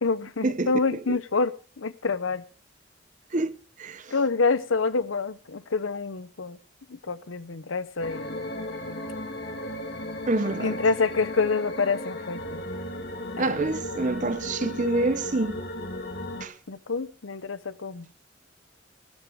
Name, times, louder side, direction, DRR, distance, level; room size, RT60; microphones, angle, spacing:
voice 1, 0.0-2.4 4.1-6.6 6.9-8.9 10.6-12.6 13.4-13.5 16.7-18.1, left 4 dB, 85° left, 0.8 m, -27 dB
voice 2, 3.3-4.1 10.3-10.7 13.4-15.6 16.4-16.5, right 2 dB, 40° right, 0.7 m, -27 dB
sound 1, 8.0-16.5, left 1 dB, 55° left, 2.3 m, -35 dB
13.5 x 12.5 x 5.0 m
head